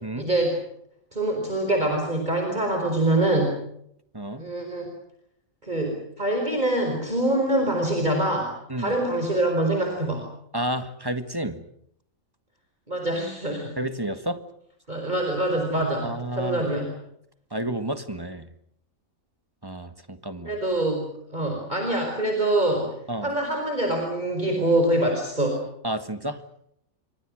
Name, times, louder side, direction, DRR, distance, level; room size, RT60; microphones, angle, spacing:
voice 1, 0.1-0.6 1.1-3.6 4.4-4.9 5.6-10.3 12.9-13.7 14.9-16.9 20.4-22.9 23.2-25.6, right 1 dB, 30° right, 3 dB, 5.1 m, -25 dB
voice 2, 4.1-4.4 8.7-8.9 10.5-11.6 13.8-14.4 16.0-16.7 17.5-18.5 19.6-20.6 23.1-23.3 25.8-26.4, right 1 dB, 15° right, 9 dB, 1.7 m, -30 dB
28.0 x 25.5 x 6.4 m, 0.73 s
omnidirectional pair, 1.4 m